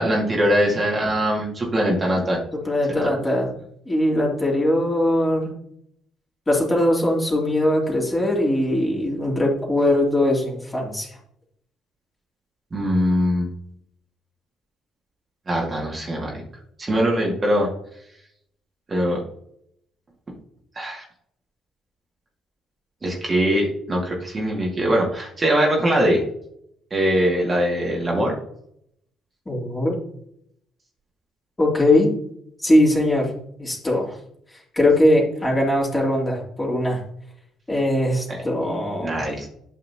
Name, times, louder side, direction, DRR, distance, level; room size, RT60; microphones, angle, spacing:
voice 1, 0.0-2.4 2.9-3.0 12.7-13.5 15.5-16.4 16.8-17.7 18.9-19.2 20.8-21.0 23.0-26.2 26.9-28.3 38.3-38.4 39.0-39.5, equal, 30° right, -2 dB, 2.4 m, -22 dB
voice 2, 2.5-3.5 3.8-5.5 6.5-11.1 29.4-30.0 31.6-32.1 32.6-33.3 33.6-34.2 34.7-37.0 37.7-39.2, left 1 dB, 20° left, -3 dB, 3.3 m, -20 dB
11.5 x 5.6 x 3.0 m, 0.70 s
figure-of-eight pair, 45°, 0 cm